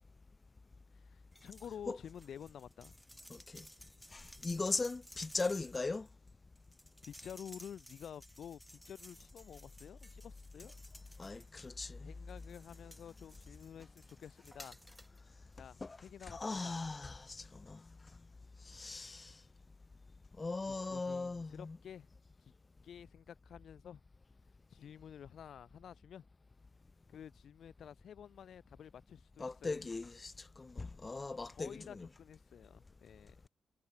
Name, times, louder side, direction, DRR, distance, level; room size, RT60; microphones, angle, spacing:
voice 1, 0.9-2.9 4.4-4.6 7.0-10.7 12.0-14.8 15.5-16.8 18.7-19.1 20.7-22.1 22.8-24.0 24.7-26.2 27.1-29.8 31.5-33.5, left 8 dB, 70° left, 2.2 m, -51 dB
sound 1, 1.3-1.8 2.1-11.8 12.3-15.2 15.5-15.6, equal, ahead, 7.6 m, -57 dB
voice 2, 3.3-3.6 4.1-6.1 11.2-12.1 15.8-16.0 16.3-17.8 18.6-19.4 20.4-21.8 29.4-32.1, left 3 dB, 30° left, 1.6 m, -39 dB
cardioid pair, 80°, 0 cm